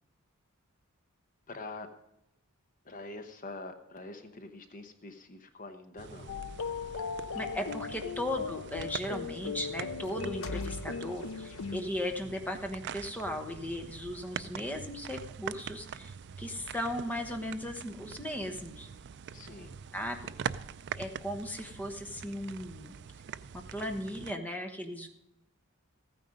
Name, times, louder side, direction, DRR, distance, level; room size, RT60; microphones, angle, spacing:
voice 1, 1.5-1.9 2.8-6.3 7.6-7.7 19.3-19.7, left 2 dB, 40° left, 7 dB, 0.9 m, -45 dB
sound 1, 6.0-24.4, right 7 dB, 55° right, 0.4 m, -44 dB
sound 2, 6.3-11.8, left 5 dB, 70° left, 0.6 m, -38 dB
voice 2, 7.3-16.1 16.4-18.9 19.9-20.3 21.0-22.9 23.5-25.1, left 1 dB, 10° left, 4 dB, 1.1 m, -37 dB
14.5 x 9.5 x 5.1 m, 0.88 s
head